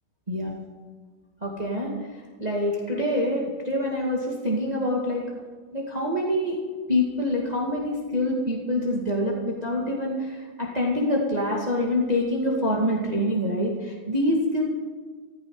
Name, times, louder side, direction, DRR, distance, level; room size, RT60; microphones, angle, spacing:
voice 1, 1.4-1.9 2.4-5.2 5.7-6.6 6.9-14.6, left 1 dB, 20° right, -3 dB, 2.4 m, -25 dB
15.5 x 15.0 x 4.9 m, 1.4 s
omnidirectional pair, 2.2 m